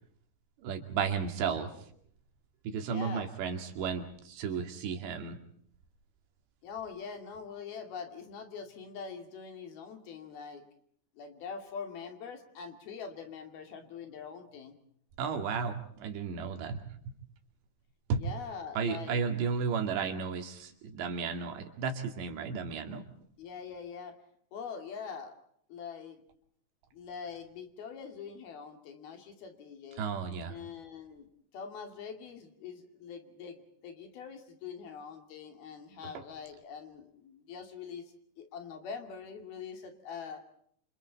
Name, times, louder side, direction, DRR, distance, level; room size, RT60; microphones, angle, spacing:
voice 1, 0.6-1.7 2.6-5.4 15.2-16.8 18.1-18.2 18.8-23.0 30.0-30.6, right 6 dB, 80° right, 6 dB, 4.5 m, -33 dB
voice 2, 2.8-3.3 6.6-10.6 11.2-14.7 18.2-19.3 23.4-24.2 24.5-25.4 25.7-26.2 26.9-30.0 30.5-40.4, left 6 dB, 60° left, 6 dB, 4.3 m, -44 dB
28.0 x 27.5 x 4.1 m, 0.63 s
omnidirectional pair, 5.0 m